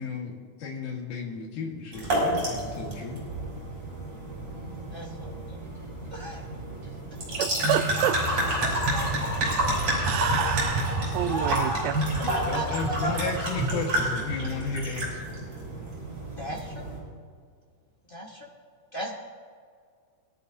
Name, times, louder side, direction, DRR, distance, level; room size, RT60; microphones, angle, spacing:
voice 1, 0.0-3.2 12.5-15.2, left 5 dB, 80° left, -2 dB, 3.2 m, -33 dB
sound 1, 1.9-17.0, right 1 dB, 45° right, 5.3 m, -29 dB
voice 2, 4.9-5.6 6.1-6.4 8.6-9.5 11.3-13.3 13.7-13.8 16.4-17.0 18.1-18.4 18.9-19.2, right 1 dB, 40° left, -3 dB, 0.7 m, -35 dB
voice 3, 7.4-8.1 10.0-10.9 11.1-11.7, right 12 dB, 80° right, 11 dB, 1.6 m, -28 dB
22.0 x 12.0 x 2.8 m, 2.1 s
omnidirectional pair, 3.6 m